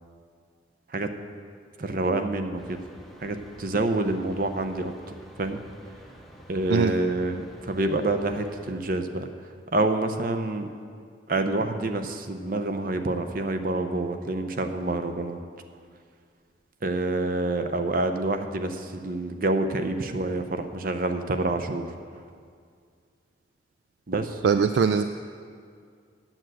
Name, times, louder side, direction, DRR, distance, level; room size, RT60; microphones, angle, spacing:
voice 1, 1.8-2.8 3.2-5.6 6.5-9.3 9.7-10.7 11.3-15.4 16.8-21.9 24.1-24.4, right 2 dB, 50° right, 7 dB, 0.7 m, -27 dB
sound 1, 2.6-8.7, equal, ahead, 0.7 m, -49 dB
voice 2, 24.4-25.1, right 6 dB, 65° right, 9 dB, 0.3 m, -21 dB
9.0 x 7.5 x 7.8 m, 2.2 s
head